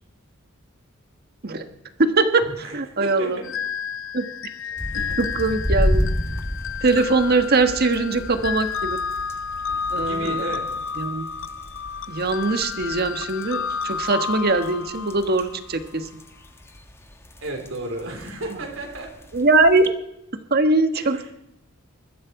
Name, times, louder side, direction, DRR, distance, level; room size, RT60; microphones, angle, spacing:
voice 1, 2.0-3.4 4.1-4.3 5.2-6.1 6.8-9.0 9.9-10.5 11.0-11.3 12.1-16.1 18.5-18.6 19.3-19.9 20.5-21.3, right 3 dB, 50° right, 9 dB, 1.3 m, -21 dB
voice 2, 3.0-3.5 4.9-5.2 9.7-10.7 17.4-19.1 21.0-21.3, right 2 dB, 70° right, 3 dB, 3.8 m, -33 dB
sound 1, 3.4-15.8, left 6 dB, 65° left, 0.5 m, -31 dB
sound 2, 4.8-19.9, equal, 10° left, 1.3 m, -32 dB
21.5 x 14.0 x 4.8 m, 0.84 s
head